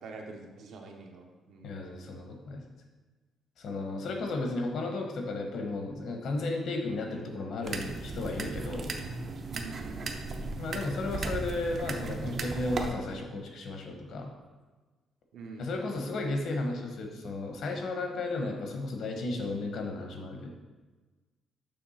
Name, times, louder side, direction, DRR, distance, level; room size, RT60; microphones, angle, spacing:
voice 1, 0.0-1.8 9.5-10.7 15.3-15.7, right 3 dB, 65° right, 2 dB, 1.0 m, -46 dB
voice 2, 1.6-2.6 3.6-8.9 10.6-14.3 15.6-20.5, left 2 dB, 60° left, 3 dB, 1.0 m, -34 dB
sound 1, 7.6-12.9, right 3 dB, 40° right, 0.6 m, -36 dB
6.8 x 3.4 x 5.6 m, 1.3 s
cardioid pair, 165°, 0 cm